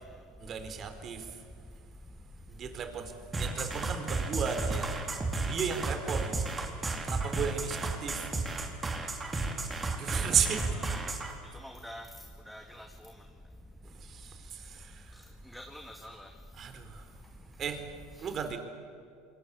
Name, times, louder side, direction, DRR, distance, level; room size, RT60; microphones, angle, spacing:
voice 1, 0.4-1.3 2.5-5.0 5.5-6.4 7.0-8.2 10.0-10.6 14.0-15.1 16.6-17.0 17.6-17.8 18.2-18.6, right 7 dB, 40° right, 8 dB, 4.0 m, -34 dB
sound 1, 3.3-11.3, right 3 dB, 20° right, 4.3 m, -33 dB
voice 2, 11.6-12.1 12.5-12.9 15.5-16.3, equal, ahead, 4 dB, 2.1 m, -45 dB
27.5 x 22.5 x 8.9 m, 2.4 s
hypercardioid pair, 75°, 0 cm